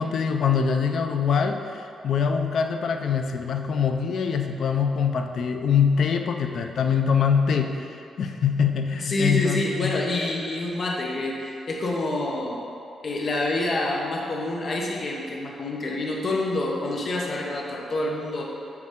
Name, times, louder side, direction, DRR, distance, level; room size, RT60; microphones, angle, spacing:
voice 1, 0.0-9.9, left 6 dB, 65° left, 5 dB, 0.5 m, -24 dB
voice 2, 9.0-12.6 13.0-18.5, left 2 dB, 45° left, -2 dB, 1.0 m, -27 dB
9.4 x 4.8 x 3.7 m, 2.6 s
cardioid pair, 120°, 0 cm